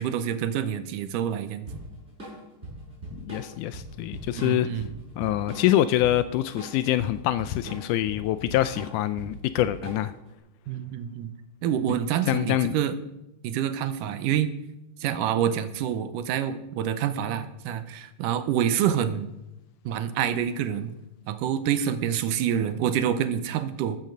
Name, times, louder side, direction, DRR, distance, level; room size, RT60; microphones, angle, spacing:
voice 1, 0.0-1.7 4.4-4.9 10.7-11.3 11.6-13.0 13.4-14.5 15.0-19.3 19.9-20.9 21.3-24.0, right 9 dB, 80° right, 2.3 m, -27 dB
Drum kit / Drum, 1.7-10.3, right 1 dB, 20° right, 6.0 m, -40 dB
voice 2, 3.1-4.7 5.2-10.1 11.9-12.0 12.3-12.8, left 13 dB, 80° left, 1.9 m, -25 dB
14.0 x 7.2 x 6.5 m
omnidirectional pair, 3.9 m